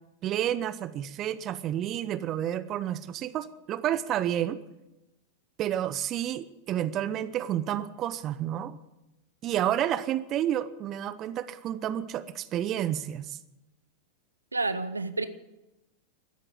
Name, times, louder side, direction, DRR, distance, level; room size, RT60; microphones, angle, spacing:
voice 1, 0.2-4.6 5.6-8.8 9.4-13.4, right 11 dB, 35° right, 15 dB, 0.7 m, -30 dB
voice 2, 14.5-15.3, right 3 dB, 80° right, 13 dB, 0.8 m, -29 dB
14.0 x 10.0 x 9.7 m, 0.96 s
figure-of-eight pair, 90°, 0 cm